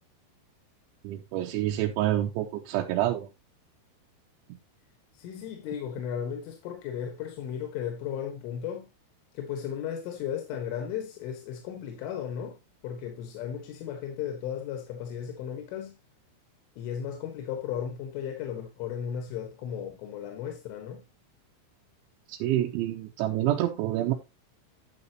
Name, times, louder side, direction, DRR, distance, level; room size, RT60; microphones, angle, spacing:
voice 1, 1.0-3.3 22.3-24.1, right 13 dB, 85° right, 3.2 m, -27 dB
voice 2, 5.2-8.9 9.4-12.6 12.8-16.0 16.8-21.0, left 8 dB, 85° left, 4.1 m, -35 dB
11.5 x 7.0 x 3.0 m
omnidirectional pair, 5.5 m